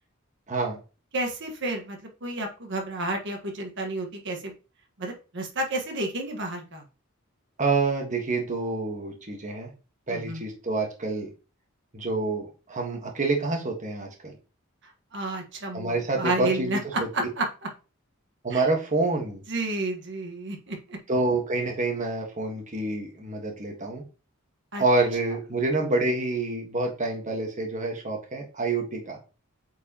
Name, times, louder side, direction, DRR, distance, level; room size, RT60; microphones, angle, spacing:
voice 1, 0.5-0.8 7.6-9.7 10.1-11.3 11.9-14.3 15.7-17.3 18.4-19.4 21.1-24.0 24.8-29.2, right 3 dB, 35° right, 1 dB, 1.4 m, -27 dB
voice 2, 1.1-4.5 5.0-6.8 10.1-10.4 15.1-17.5 18.5-18.6 19.5-21.0 24.7-24.8, right 2 dB, 60° right, 3 dB, 1.5 m, -31 dB
8.6 x 4.7 x 2.9 m, 0.33 s
head